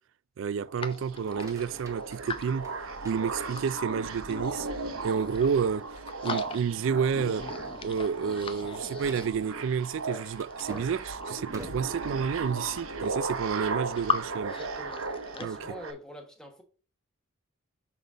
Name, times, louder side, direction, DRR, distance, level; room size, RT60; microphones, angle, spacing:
voice 1, 0.4-2.7 3.0-4.7 5.0-5.8 6.2-7.5 7.8-14.5 15.4-15.6, right 6 dB, 65° right, 0.3 m, -30 dB
sound 1, 0.6-15.9, right 3 dB, 85° right, 1.0 m, -37 dB
sound 2, 0.8-3.7 4.1-5.7 6.0-6.9 7.1-9.7 10.4-11.6 12.3-12.4 12.6-14.2 14.5-15.5, left 5 dB, 25° left, 0.5 m, -39 dB
sound 3, 1.1-3.9 4.4-4.9 5.3-5.4 5.8-6.0 6.7-7.0 7.3-13.2, right 1 dB, 15° right, 1.2 m, -50 dB
voice 2, 14.4-16.6, equal, 5° left, 1.3 m, -46 dB
6.7 x 4.0 x 4.9 m
head